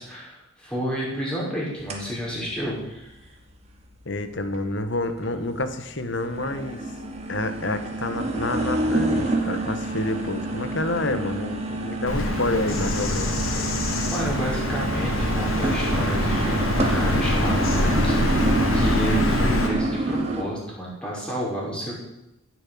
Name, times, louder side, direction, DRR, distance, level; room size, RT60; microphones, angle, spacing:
voice 1, 0.0-3.3 14.1-21.9, equal, 5° left, -5 dB, 5.6 m, -31 dB
sound 1, 1.9-2.0 2.5-2.6 3.3-3.4 4.5-4.6 5.0-5.7 6.0-20.4, right 1 dB, 30° right, 2.3 m, -27 dB
voice 2, 4.0-6.8 7.3-13.7, left 2 dB, 60° left, 10 dB, 1.4 m, -28 dB
Bird vocalization bird call bird song, 12.1-19.7, left 1 dB, 90° left, 2.9 m, -24 dB
16.0 x 7.8 x 8.6 m, 0.90 s
head